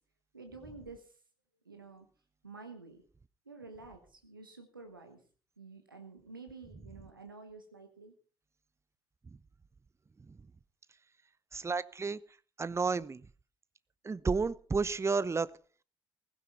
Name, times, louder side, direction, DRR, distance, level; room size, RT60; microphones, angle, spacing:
voice 1, 0.3-1.1 1.6-2.1 2.4-3.0 3.5-5.2 5.6-8.1, right 4 dB, 85° right, 5 dB, 1.2 m, -50 dB
voice 2, 11.5-12.2 12.6-13.2 14.0-15.5, right 4 dB, 25° right, 19 dB, 0.8 m, -31 dB
16.0 x 15.5 x 4.3 m, 0.40 s
figure-of-eight pair, 40°, 11 cm